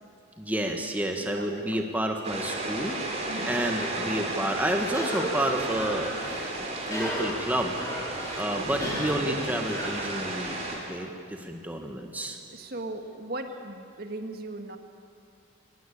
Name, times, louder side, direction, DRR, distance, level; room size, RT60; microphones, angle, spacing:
voice 1, 0.4-3.0 3.4-6.1 6.9-7.8 8.4-12.4, right 1 dB, 10° right, 3 dB, 1.5 m, -30 dB
voice 2, 1.3-1.9 3.3-3.6 8.5-9.0 12.5-14.8, right 2 dB, 45° right, 6 dB, 1.6 m, -38 dB
sound 1, 2.2-10.8, right 2 dB, 30° right, 3.9 m, -33 dB
Cough, 4.8-10.6, equal, 15° left, 5.6 m, -36 dB
23.5 x 20.0 x 8.7 m, 2.3 s
head